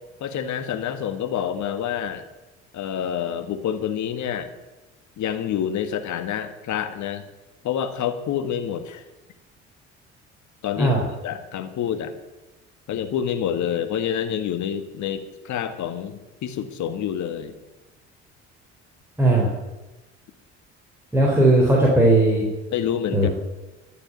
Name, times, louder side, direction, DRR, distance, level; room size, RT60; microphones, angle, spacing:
voice 1, 0.2-2.2 2.7-4.5 5.2-7.2 7.6-9.0 10.6-10.9 11.2-12.1 12.9-17.5 22.7-23.3, left 9 dB, 60° left, 9 dB, 1.6 m, -27 dB
voice 2, 19.2-19.5 21.1-22.5 23.1-23.3, right 1 dB, 5° right, -3 dB, 3.7 m, -17 dB
12.0 x 6.8 x 9.5 m, 1.1 s
hypercardioid pair, 60°, 33 cm